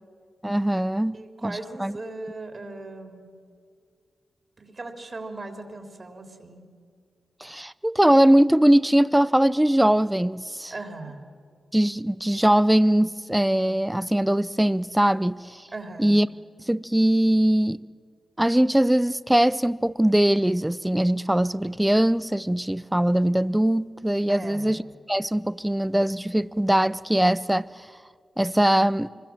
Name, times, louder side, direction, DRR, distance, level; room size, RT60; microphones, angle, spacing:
voice 1, 0.4-2.0 7.4-10.7 11.7-15.6 16.0-16.3 16.7-17.8 18.4-24.8 25.1-27.7 28.4-29.1, right 1 dB, 10° right, 0.7 m, -21 dB
voice 2, 1.1-3.3 4.6-6.7 10.7-11.2 15.7-16.2 24.3-24.7, right 2 dB, 45° right, 3.6 m, -38 dB
25.0 x 22.5 x 7.5 m
supercardioid pair, 45°, 0 cm